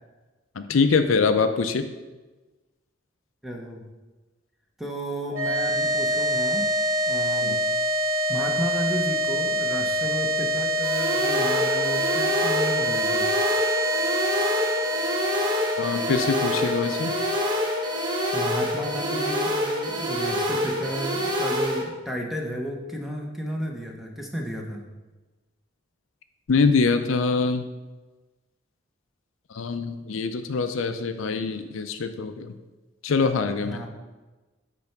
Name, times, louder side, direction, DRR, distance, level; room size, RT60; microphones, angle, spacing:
voice 1, 0.6-1.9 7.4-7.6 15.8-17.1 26.5-27.7 29.5-32.6 33.0-33.8, left 4 dB, 75° left, 9 dB, 0.5 m, -24 dB
voice 2, 3.4-3.8 4.8-6.6 7.1-7.6 8.3-13.2 18.3-24.8 33.6-33.9, equal, ahead, 0 dB, 0.9 m, -33 dB
sound 1, 5.3-19.7, equal, 85° right, 1.5 m, -26 dB
sound 2, 10.8-21.8, equal, 20° right, 1.0 m, -27 dB
8.4 x 3.4 x 5.9 m, 1.2 s
head